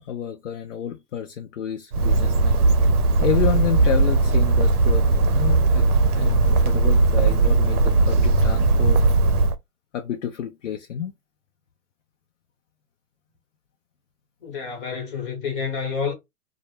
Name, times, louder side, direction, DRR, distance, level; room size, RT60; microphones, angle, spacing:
voice 1, 0.0-2.6 3.2-5.8 6.1-9.0 9.9-11.1, left 9 dB, 55° left, 0.5 m, -29 dB
Bird, 1.9-9.5, right 3 dB, 65° right, 0.6 m, -18 dB
voice 2, 14.4-16.1, left 6 dB, 35° left, 1.0 m, -29 dB
2.1 x 2.1 x 3.1 m
hypercardioid pair, 145°, 47 cm